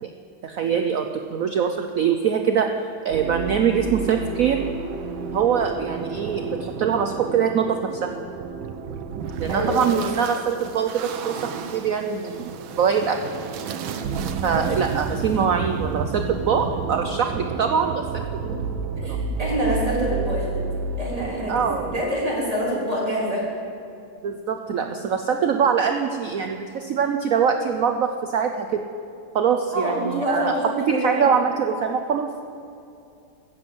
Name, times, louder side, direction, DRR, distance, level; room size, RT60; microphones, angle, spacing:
voice 1, 0.4-2.7 3.0-4.6 5.3-8.1 9.4-10.9 11.2-11.4 11.7-12.5 12.8-13.2 14.4-18.3 21.5-21.9 24.2-28.8 29.3-32.3, right 7 dB, 70° right, 5 dB, 0.8 m, -23 dB
sound 1, 3.1-22.0, right 5 dB, 90° right, 1.6 m, -31 dB
voice 2, 9.5-10.0 13.9-14.1 14.5-14.6 18.4-18.5 19.0-20.7 21.0-21.6 21.9-23.4 29.7-31.3, equal, 15° right, -5 dB, 3.4 m, -26 dB
14.5 x 7.9 x 7.7 m, 2.6 s
omnidirectional pair, 2.1 m